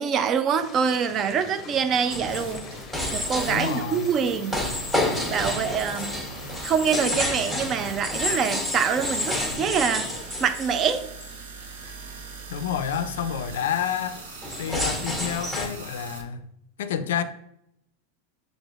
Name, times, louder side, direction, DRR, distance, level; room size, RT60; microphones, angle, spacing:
voice 1, 0.0-2.7 3.1-4.6 5.3-6.2 6.6-10.1 10.4-11.1, right 7 dB, 35° right, 10 dB, 0.4 m, -25 dB
sound 1, 0.6-9.5, left 5 dB, 35° left, 0.6 m, -44 dB
sound 2, 2.1-11.5 11.9-12.2 12.6-12.7 12.9-13.2 14.1-15.7, left 1 dB, 10° right, 1.1 m, -30 dB
sound 3, 2.1-16.2, right 4 dB, 80° right, 0.7 m, -42 dB
voice 2, 3.5-4.1 12.5-14.2 14.6-16.5 16.8-17.2, left 8 dB, 75° left, 11 dB, 0.3 m, -29 dB
6.0 x 2.6 x 2.4 m, 0.78 s
hypercardioid pair, 105°, 0 cm